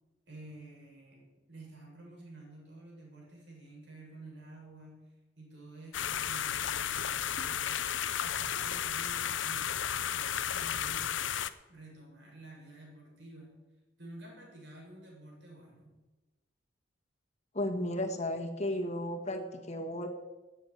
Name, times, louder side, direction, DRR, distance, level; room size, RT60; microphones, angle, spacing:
voice 1, 0.3-5.1 5.4-7.9 8.2-9.7 10.1-11.2 11.7-13.6 14.0-15.9, right 2 dB, 65° right, -2 dB, 7.2 m, -50 dB
sound 1, 5.9-11.5, left 9 dB, 85° left, 0.7 m, -33 dB
voice 2, 17.5-20.1, left 1 dB, 35° left, 3 dB, 1.8 m, -34 dB
13.5 x 9.3 x 9.6 m, 1.2 s
head